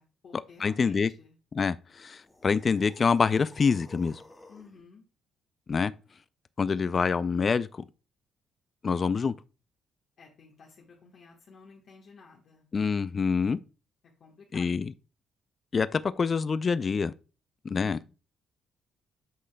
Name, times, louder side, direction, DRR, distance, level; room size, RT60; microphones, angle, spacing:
voice 1, 0.0-1.4 4.5-5.0 10.2-12.6 14.2-14.8 17.8-18.0, left 4 dB, 60° left, 1.3 m, -53 dB
voice 2, 0.6-1.1 1.5-4.2 5.7-5.9 6.6-7.9 8.8-9.3 12.7-13.6 14.5-14.9 15.7-17.1 17.6-18.0, left 5 dB, 40° left, 0.3 m, -26 dB
sound 1, 2.2-4.8, left 2 dB, 15° left, 1.2 m, -53 dB
8.3 x 5.6 x 2.2 m
cardioid pair, 90°, 0 cm